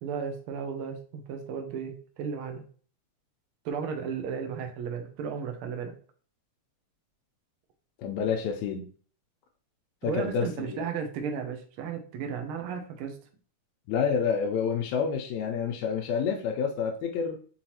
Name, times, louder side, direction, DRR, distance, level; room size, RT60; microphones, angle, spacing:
voice 1, 0.0-2.6 3.6-5.9 10.1-13.1, right 6 dB, 80° right, 4 dB, 1.2 m, -34 dB
voice 2, 8.0-8.9 10.0-10.8 13.9-17.4, left 6 dB, 80° left, 1 dB, 1.9 m, -28 dB
5.5 x 3.0 x 2.8 m, 0.42 s
omnidirectional pair, 3.3 m